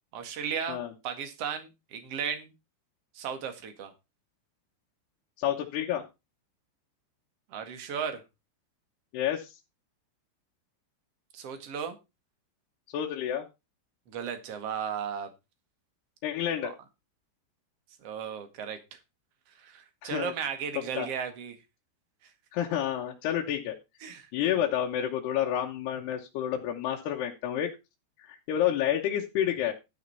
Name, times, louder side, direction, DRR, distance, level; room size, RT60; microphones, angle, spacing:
voice 1, 0.1-2.5 3.1-3.9 7.5-8.2 11.3-12.0 14.1-15.3 16.6-16.7 18.0-19.0 19.6-21.6 24.0-24.3, right 7 dB, 45° right, 8 dB, 2.2 m, -35 dB
voice 2, 5.4-6.0 9.1-9.5 12.9-13.4 16.2-16.7 20.0-20.3 21.0-21.1 22.5-23.8 24.3-27.7 28.2-29.7, left 10 dB, 75° left, 0 dB, 3.1 m, -29 dB
12.5 x 6.5 x 5.5 m, 0.26 s
omnidirectional pair, 4.9 m